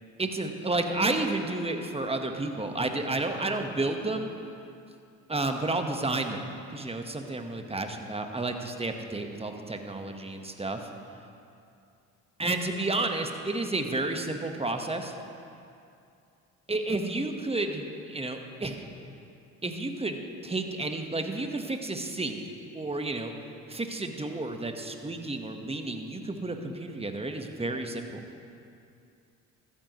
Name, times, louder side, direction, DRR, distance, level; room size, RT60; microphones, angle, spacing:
voice 1, 0.2-4.3 5.3-10.9 12.4-15.1 16.7-18.8 19.6-22.4 22.7-23.3 23.7-28.2, right 2 dB, 15° right, 5 dB, 1.3 m, -31 dB
14.0 x 13.0 x 3.1 m, 2.5 s
hypercardioid pair, 55°, 41 cm